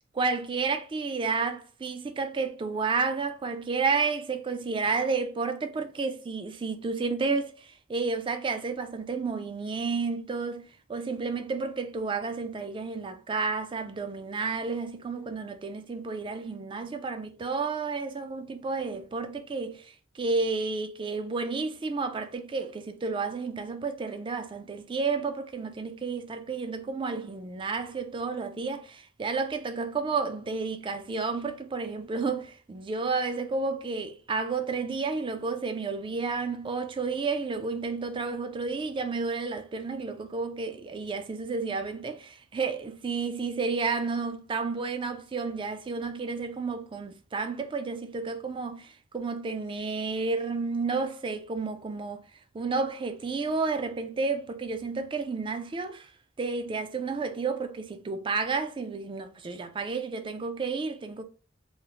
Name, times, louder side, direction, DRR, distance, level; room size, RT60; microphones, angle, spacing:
voice 1, 0.1-52.2 52.5-56.1 56.4-61.2, right 4 dB, 25° right, 0.3 m, -31 dB
2.7 x 2.0 x 2.8 m
head